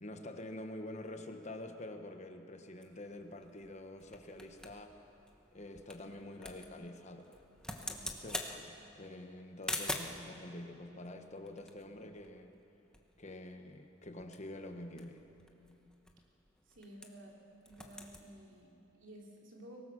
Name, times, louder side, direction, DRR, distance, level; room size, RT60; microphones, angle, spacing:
voice 1, 0.0-5.0 5.5-7.4 8.2-12.5 13.2-15.2, left 1 dB, 35° left, 6 dB, 1.1 m, -47 dB
sound 1, 2.8-10.3 11.0-12.7 12.9-13.0 13.3-13.6 14.0-17.3 17.6-18.2, left 1 dB, 5° left, 1.2 m, -45 dB
voice 2, 7.8-8.1 16.7-17.4 17.6-19.8, right 1 dB, 65° right, -1 dB, 3.3 m, -54 dB
23.0 x 19.0 x 6.3 m, 2.8 s
head